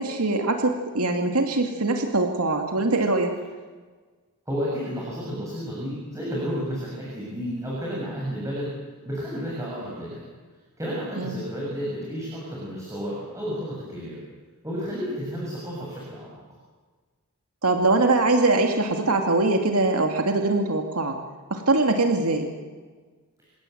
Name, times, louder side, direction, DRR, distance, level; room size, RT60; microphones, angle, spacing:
voice 1, 0.0-3.3 11.2-11.4 17.6-21.2 21.5-22.5, right 2 dB, 80° right, 4 dB, 2.5 m, -22 dB
voice 2, 4.5-8.7 9.1-10.3 10.8-14.2 14.6-16.4, equal, 15° right, -5 dB, 7.2 m, -31 dB
29.0 x 17.5 x 8.0 m, 1.4 s
head